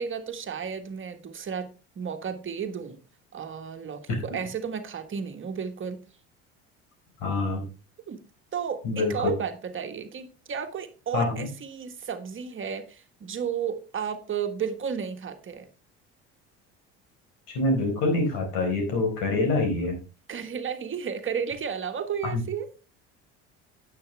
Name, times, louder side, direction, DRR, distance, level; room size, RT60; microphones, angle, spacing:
voice 1, 0.0-3.0 3.3-6.0 8.1-8.2 8.5-15.7 20.3-22.7, right 7 dB, 35° right, 7 dB, 1.5 m, -33 dB
voice 2, 7.2-7.6 8.8-9.3 11.1-11.5 17.5-20.0 22.3-22.4, left 2 dB, 75° left, 3 dB, 4.7 m, -25 dB
9.6 x 8.7 x 3.4 m, 0.33 s
supercardioid pair, 85°, 33 cm